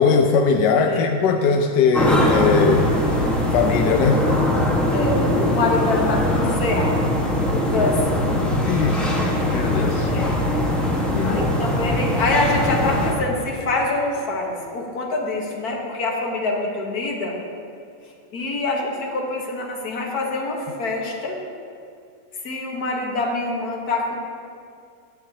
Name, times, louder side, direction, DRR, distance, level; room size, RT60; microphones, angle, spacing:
voice 1, 0.0-2.9 3.5-4.2 8.6-10.1 11.1-11.5, left 5 dB, 75° left, 4 dB, 1.0 m, -20 dB
sound 1, 1.9-13.1, left 1 dB, ahead, 0.9 m, -21 dB
voice 2, 4.9-7.0 7.5-8.0 10.1-10.4 11.2-17.4 18.3-21.4 22.4-24.1, left 2 dB, 50° left, -1 dB, 1.7 m, -25 dB
13.0 x 9.9 x 2.9 m, 2.4 s
omnidirectional pair, 2.4 m